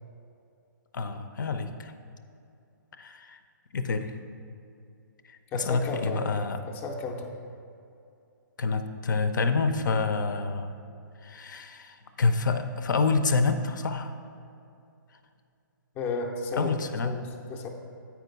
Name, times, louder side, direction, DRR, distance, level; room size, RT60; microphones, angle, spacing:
voice 1, 0.9-1.9 3.0-3.4 3.7-4.2 5.3-6.6 8.6-10.7 11.2-14.1 16.6-17.2, left 4 dB, 65° left, 9 dB, 0.6 m, -28 dB
voice 2, 5.5-6.2 6.7-7.4 16.0-16.7 17.0-17.7, left 3 dB, 15° left, 1 dB, 0.5 m, -33 dB
8.6 x 4.6 x 5.1 m, 2.6 s
hypercardioid pair, 160°, 11 cm